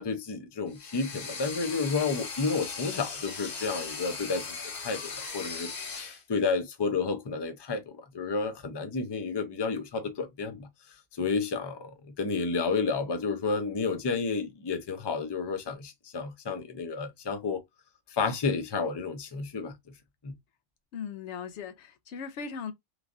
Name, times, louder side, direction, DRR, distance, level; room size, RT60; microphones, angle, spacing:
voice 1, 0.0-5.7 6.0-10.7 11.2-17.6 18.1-19.8 20.2-20.3, left 4 dB, 35° left, 0.4 m, -31 dB
sound 1, 0.7-6.2, left 4 dB, 55° left, 1.0 m, -38 dB
voice 2, 20.9-22.7, left 6 dB, 85° left, 0.9 m, -38 dB
3.1 x 2.3 x 2.5 m
omnidirectional pair, 1.2 m